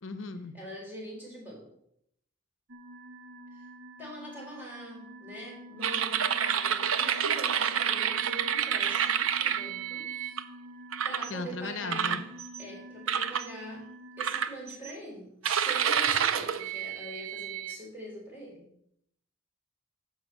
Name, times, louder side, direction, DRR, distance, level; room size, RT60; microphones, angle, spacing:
voice 1, 0.0-0.5 11.3-12.2, left 3 dB, 70° left, 10 dB, 0.9 m, -37 dB
voice 2, 0.5-1.7 3.5-3.6 4.0-10.1 11.0-12.3 12.6-13.9 14.2-18.7, equal, 10° right, -3 dB, 3.7 m, -43 dB
sound 1, 2.7-14.3, right 1 dB, 60° right, 0.8 m, -48 dB
sound 2, 5.8-10.4 10.9-11.3 11.9-12.6 13.1-13.5 14.2-14.9 15.4-17.8, right 8 dB, 85° right, 0.6 m, -29 dB
9.6 x 7.1 x 5.4 m, 0.72 s
head